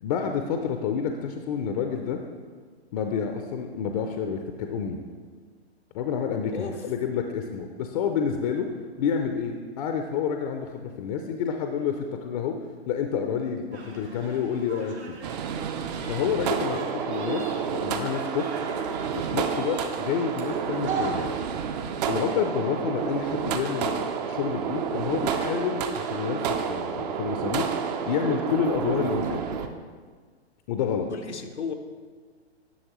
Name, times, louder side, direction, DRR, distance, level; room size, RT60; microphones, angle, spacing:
voice 1, 0.0-2.2 2.9-5.0 5.9-8.7 9.0-12.6 12.9-15.2 16.1-18.5 19.2-21.3 22.1-29.4 30.7-31.1, left 7 dB, 35° left, 5 dB, 0.5 m, -29 dB
voice 2, 6.5-6.9 16.7-16.8 29.0-29.4 31.1-31.7, left 5 dB, 90° left, 5 dB, 0.9 m, -35 dB
sound 1, 13.7-21.6, right 3 dB, 80° right, 1.6 m, -40 dB
sound 2, 15.2-29.7, right 7 dB, 40° right, 0.6 m, -30 dB
11.0 x 6.3 x 3.1 m, 1.5 s
hypercardioid pair, 120°, 33 cm